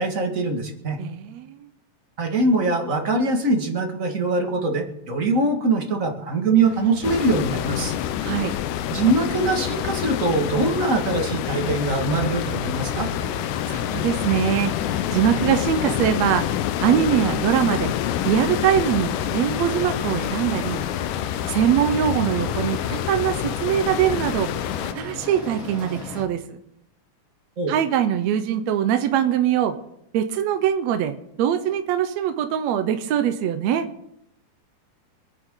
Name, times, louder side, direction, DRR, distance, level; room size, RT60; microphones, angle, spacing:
voice 1, 0.0-1.0 2.2-8.0 8.9-13.1 27.6-27.8, right 3 dB, 30° right, 3 dB, 1.8 m, -23 dB
voice 2, 1.0-1.7 8.2-8.5 13.7-14.7 15.1-16.5 16.8-17.9 18.2-20.9 21.5-24.5 25.0-26.6 27.7-29.8 30.1-33.9, right 10 dB, 70° right, 8 dB, 1.9 m, -22 dB
sound 1, 6.6-26.2, left 2 dB, 40° left, 3.8 m, -38 dB
sound 2, 7.0-24.9, left 11 dB, 90° left, 2.2 m, -27 dB
26.0 x 9.8 x 3.8 m, 0.77 s
omnidirectional pair, 3.5 m